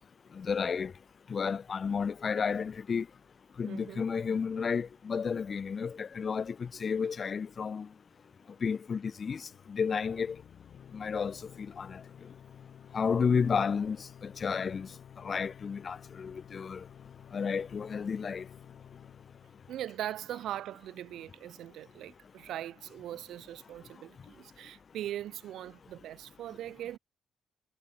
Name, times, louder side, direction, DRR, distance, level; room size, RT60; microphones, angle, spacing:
voice 1, 0.3-0.9 1.3-3.1 3.6-7.9 8.6-10.4 10.9-12.0 12.9-14.9 15.2-16.8 17.3-18.5, left 6 dB, 45° left, 0.7 m, -32 dB
voice 2, 3.7-4.1 19.7-27.0, right 12 dB, 75° right, 3.6 m, -40 dB
sound 1, 9.5-20.9, left 9 dB, 60° left, 3.6 m, -53 dB
cardioid pair, 90°, 0 cm